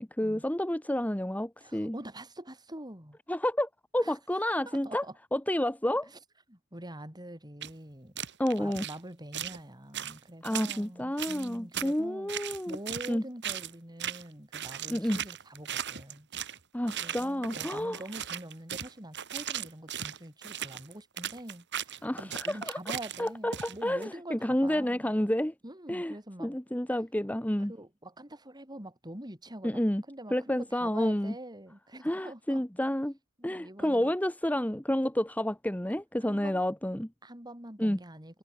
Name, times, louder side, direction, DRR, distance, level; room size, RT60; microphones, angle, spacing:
voice 1, 0.0-2.0 3.3-5.0 5.3-6.1 8.4-8.8 10.4-12.8 13.1-13.2 14.9-15.2 16.7-18.0 22.0-22.8 23.2-25.5 25.9-27.7 29.6-30.0 30.3-31.3 32.0-33.1 33.4-37.1 37.8-38.0, left 1 dB, 5° left, 1.1 m, -30 dB
voice 2, 1.6-3.2 4.0-4.2 4.7-5.2 6.1-6.2 6.5-8.1 8.6-12.3 12.7-16.3 17.0-25.1 25.6-26.6 27.7-29.8 30.1-32.6 33.4-34.1 36.3-36.6 37.2-38.4, right 1 dB, 20° right, 5.9 m, -45 dB
sound 1, 7.6-7.7 8.2-9.0 9.3-9.6 9.9-10.8 11.2-11.9 12.3-13.1 13.4-13.7 14.0-14.3 14.5-16.6 16.9-24.0, right 9 dB, 55° right, 4.6 m, -37 dB
head